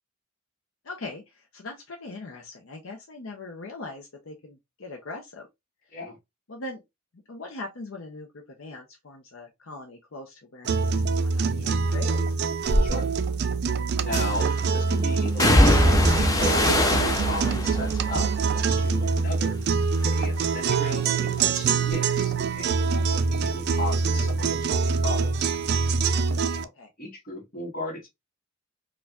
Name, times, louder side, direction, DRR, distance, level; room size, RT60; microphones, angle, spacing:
voice 1, 0.8-5.5 6.5-6.8 7.3-12.4 26.8-26.9, left 2 dB, 75° left, 0.7 m, -41 dB
sound 1, 10.6-26.6, right 5 dB, 55° right, 0.3 m, -25 dB
sound 2, 12.6-12.9 14.1-14.6 15.4-19.6 19.9-20.6 20.9-24.2 24.5-25.6 25.9-26.1, left 1 dB, 15° left, 0.5 m, -25 dB
voice 2, 14.0-16.0 16.3-19.6 20.0-25.5 26.5-26.7 27.0-28.1, left 1 dB, 45° left, 1.4 m, -36 dB
4.5 x 2.4 x 2.3 m
head